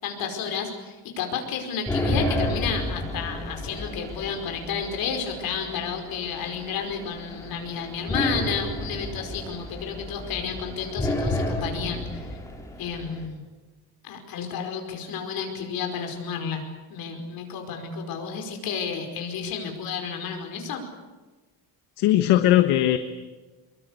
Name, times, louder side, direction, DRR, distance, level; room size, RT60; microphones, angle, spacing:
voice 1, 0.0-12.3 12.8-13.4 14.0-16.6 16.9-20.8, left 6 dB, 60° left, 4 dB, 5.1 m, -31 dB
sound 1, 1.9-13.3, left 1 dB, 10° left, 3.8 m, -31 dB
voice 2, 22.0-23.0, left 13 dB, 75° left, 8 dB, 1.4 m, -19 dB
24.5 x 22.5 x 8.3 m, 1.2 s
cardioid pair, 175°, 40 cm